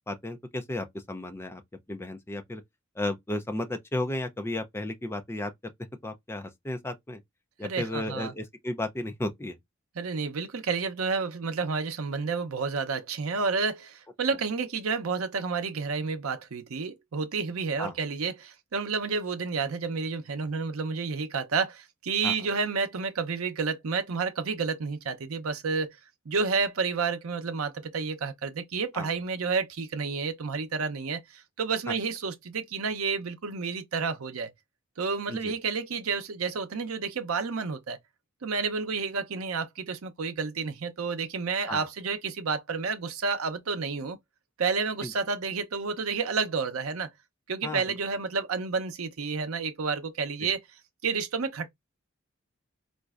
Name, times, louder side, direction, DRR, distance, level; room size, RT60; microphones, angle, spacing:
voice 1, 0.1-1.6 1.9-2.6 3.0-5.5 6.0-7.2 7.6-9.6 17.8-17.9 22.2-22.3 28.9-29.1 35.3-35.5 41.7-41.9 45.0-45.1 47.6-47.8 50.4-50.5, left 1 dB, 10° left, 0.4 m, -34 dB
voice 2, 7.6-8.3 10.0-26.0 26.3-34.5 35.0-38.0 38.4-44.2 44.6-47.1 47.5-50.6 51.0-51.7, right 5 dB, 80° right, 0.6 m, -30 dB
4.1 x 2.5 x 2.4 m
head